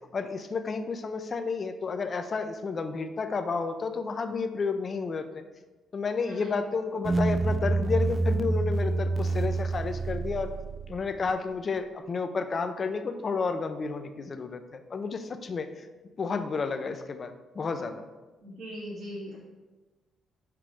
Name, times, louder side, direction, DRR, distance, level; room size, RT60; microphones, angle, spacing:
voice 1, 0.1-5.4 5.9-10.5 10.9-15.9 16.2-18.1, left 4 dB, 40° left, 8 dB, 0.6 m, -31 dB
voice 2, 6.2-6.6 18.4-19.4, equal, 70° right, -10 dB, 2.3 m, -39 dB
sound 1, 7.0-11.3, right 3 dB, 25° right, 0.4 m, -27 dB
6.0 x 5.0 x 4.7 m, 1.2 s
cardioid pair, 90°, 0 cm